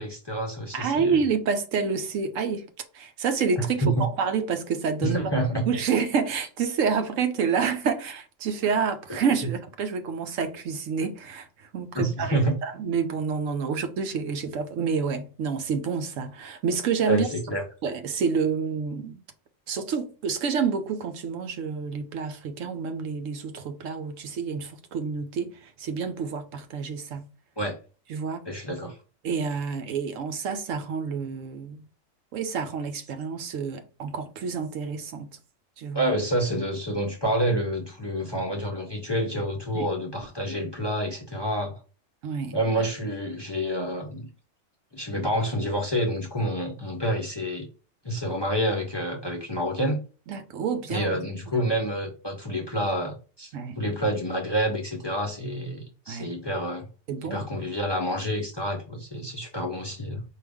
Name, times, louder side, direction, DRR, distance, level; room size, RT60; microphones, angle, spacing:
voice 1, 0.0-1.2 3.6-4.0 5.0-5.6 9.4-9.5 11.9-12.6 17.1-17.6 27.6-27.8 28.5-29.0 35.9-41.7 42.5-44.3 44.9-47.7 48.0-50.0 50.9-56.9 57.2-60.2, equal, 25° left, 0.6 m, -28 dB
voice 2, 0.7-2.7 2.9-5.2 5.7-17.3 17.8-19.2 19.7-27.3 28.1-28.4 29.2-31.8 32.3-35.4 35.8-36.1 39.7-39.9 42.2-42.9 50.3-51.1 51.6-51.7 53.5-53.8 56.1-56.3 57.1-57.5, right 5 dB, 80° right, 1.0 m, -28 dB
4.7 x 2.5 x 3.4 m
omnidirectional pair, 1.3 m